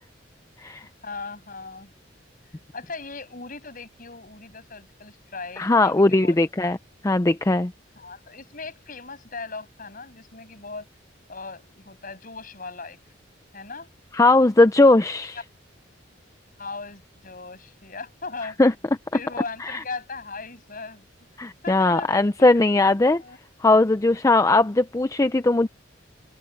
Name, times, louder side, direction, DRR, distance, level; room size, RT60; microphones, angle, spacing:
voice 1, 1.0-1.9 2.7-6.4 8.0-10.9 11.3-13.0 13.5-13.9 16.6-18.6 19.1-21.1 21.6-22.8 23.2-23.4, left 4 dB, 45° left, 7.6 m, -38 dB
voice 2, 5.6-6.8 7.0-7.7 14.1-15.4 18.6-18.7 19.6-19.8 21.4-23.2 23.6-25.7, left 2 dB, 15° left, 0.4 m, -19 dB
open air
head